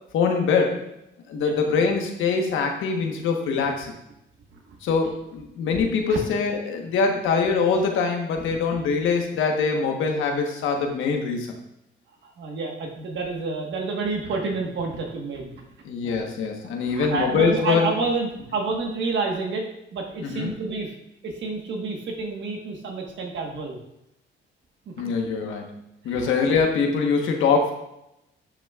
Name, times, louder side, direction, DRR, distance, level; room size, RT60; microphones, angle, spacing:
voice 1, 0.1-0.8 1.3-3.9 4.8-11.5 15.8-17.9 20.2-20.5 25.0-25.7 26.0-27.7, left 5 dB, 85° left, 2 dB, 1.2 m, -23 dB
voice 2, 12.2-15.6 16.0-16.3 16.8-20.9 21.2-23.8 25.0-25.1 26.0-26.3, right 3 dB, 65° right, 1 dB, 1.4 m, -29 dB
9.9 x 6.1 x 2.4 m, 0.85 s
cardioid pair, 90°, 20 cm